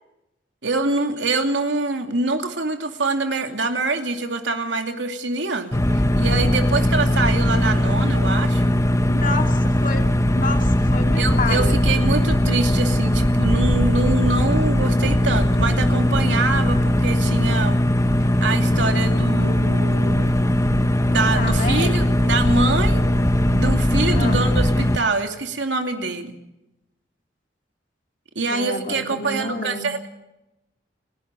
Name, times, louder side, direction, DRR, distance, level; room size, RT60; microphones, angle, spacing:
voice 1, 0.6-8.6 11.1-17.8 18.4-20.3 20.7-20.8 21.1-23.1 23.5-26.3 28.3-30.1, right 3 dB, 85° right, 5 dB, 2.7 m, -25 dB
sound 1, 5.7-25.0, left 1 dB, 15° left, 1.0 m, -19 dB
voice 2, 9.1-11.8 21.4-22.2 24.1-24.5 28.5-29.9, left 3 dB, 45° left, 4 dB, 2.5 m, -29 dB
29.5 x 12.5 x 7.7 m, 0.90 s
head